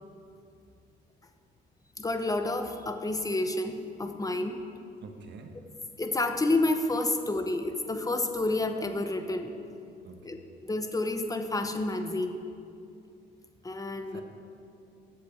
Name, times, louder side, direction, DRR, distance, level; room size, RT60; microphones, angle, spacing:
voice 1, 2.0-4.6 6.0-9.5 10.2-12.4 13.6-14.2, left 2 dB, 15° left, 6 dB, 0.8 m, -29 dB
voice 2, 5.0-5.7 10.0-10.4 14.1-14.2, right 4 dB, 65° right, 4 dB, 1.2 m, -47 dB
7.9 x 6.7 x 7.9 m, 2.5 s
cardioid pair, 90°, 20 cm